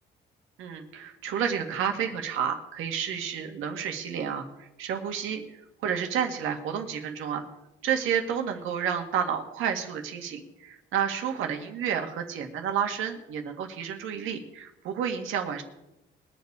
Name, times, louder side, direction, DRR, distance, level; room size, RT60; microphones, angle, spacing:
voice 1, 0.6-5.4 5.8-7.4 7.8-15.6, right 8 dB, 90° right, 4 dB, 1.9 m, -30 dB
21.5 x 7.4 x 4.8 m, 0.91 s
cardioid pair, 90°, 20 cm